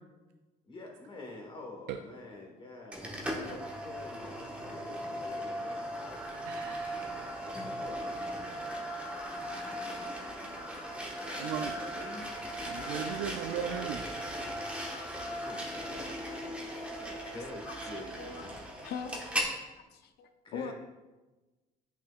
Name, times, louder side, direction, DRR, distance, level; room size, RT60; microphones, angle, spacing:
voice 1, 0.6-5.9 7.5-8.1 11.3-12.3 15.2-18.6 20.4-20.7, left 2 dB, 30° left, 0 dB, 1.3 m, -47 dB
sound 1, 2.9-19.5, equal, 5° right, 1.3 m, -38 dB
voice 2, 6.5-7.1 11.4-11.8 12.7-14.1, right 9 dB, 85° right, 6 dB, 0.4 m, -37 dB
voice 3, 17.7-18.5 18.8-19.1 19.8-20.7, left 6 dB, 70° left, 7 dB, 0.6 m, -41 dB
8.3 x 6.3 x 2.4 m, 1.2 s
cardioid pair, 110°, 17 cm